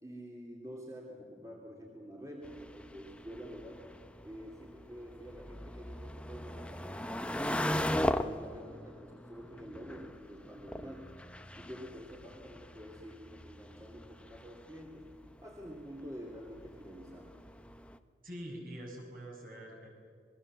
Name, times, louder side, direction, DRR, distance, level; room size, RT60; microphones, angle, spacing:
voice 1, 0.0-3.8 4.2-11.1 11.5-15.1 15.4-17.3, equal, 20° right, -1 dB, 2.6 m, -48 dB
sound 1, 2.4-18.0, left 1 dB, 5° left, 0.7 m, -40 dB
voice 2, 18.2-19.9, equal, 50° right, 0 dB, 6.4 m, -45 dB
27.0 x 21.5 x 7.5 m, 2.2 s
head